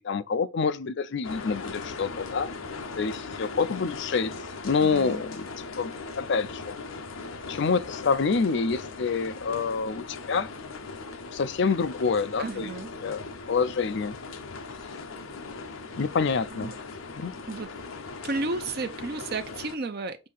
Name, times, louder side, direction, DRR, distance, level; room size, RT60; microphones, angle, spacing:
voice 1, 0.0-2.5 3.0-4.3 4.6-5.5 5.8-5.9 6.2-6.7 7.5-10.5 11.3-12.7 13.0-13.2 13.5-14.2 16.0-16.7 17.2-17.3, left 5 dB, 60° left, 0.5 m, -27 dB
sound 1, 1.2-19.8, left 4 dB, 80° left, 0.8 m, -39 dB
voice 2, 4.8-5.2 12.4-12.9 16.5-16.8 17.5-17.7 18.2-20.3, right 3 dB, 50° right, 0.7 m, -32 dB
6.5 x 2.8 x 5.4 m
head